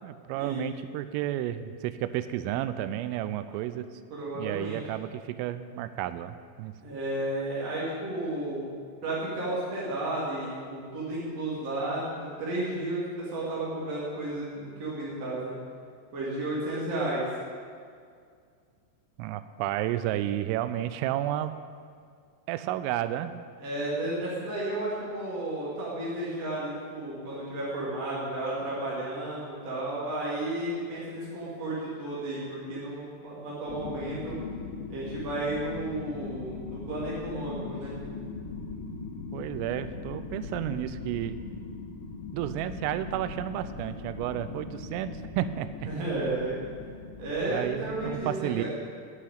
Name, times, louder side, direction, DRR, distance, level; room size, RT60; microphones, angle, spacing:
voice 1, 0.0-3.9 4.3-6.7 19.2-21.5 22.5-23.3 39.3-41.4 42.3-45.9 47.5-48.6, right 12 dB, 85° right, 12 dB, 3.2 m, -32 dB
voice 2, 4.1-4.8 6.8-8.7 9.0-15.5 16.1-17.2 23.6-34.4 34.9-37.9 45.8-46.5 47.2-48.6, right 2 dB, 40° right, -7 dB, 2.8 m, -33 dB
sound 1, 33.7-48.1, left 4 dB, 70° left, 2.1 m, -40 dB
9.9 x 8.4 x 9.0 m, 2.1 s
omnidirectional pair, 5.8 m